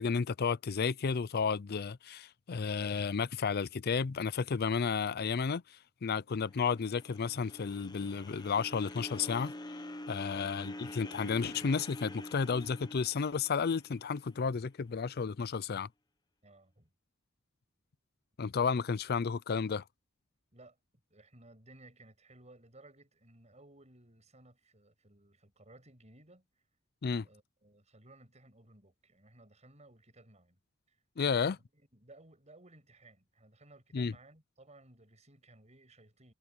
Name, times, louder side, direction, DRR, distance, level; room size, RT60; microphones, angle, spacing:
voice 1, 0.0-9.5 10.1-15.9 18.4-19.8 27.0-27.3 31.2-31.6 33.9-34.1, left 5 dB, 50° left, 0.5 m, -32 dB
sound 1, 6.3-14.6, left 1 dB, 20° left, 0.8 m, -47 dB
voice 2, 16.4-16.9 20.5-26.5 27.2-30.6 30.9-31.0 31.3-36.3, right 2 dB, 35° right, 7.8 m, -59 dB
head